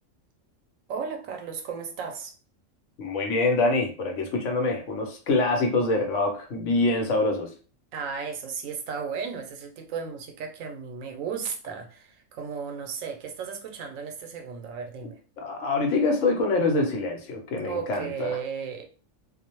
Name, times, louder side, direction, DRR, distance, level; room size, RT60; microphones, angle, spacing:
voice 1, 0.9-2.3 7.9-15.2 17.6-18.8, right 6 dB, 85° right, 1.0 m, -35 dB
voice 2, 3.0-7.5 15.4-18.4, left 2 dB, 70° left, 1.0 m, -25 dB
2.4 x 2.0 x 2.9 m
omnidirectional pair, 1.3 m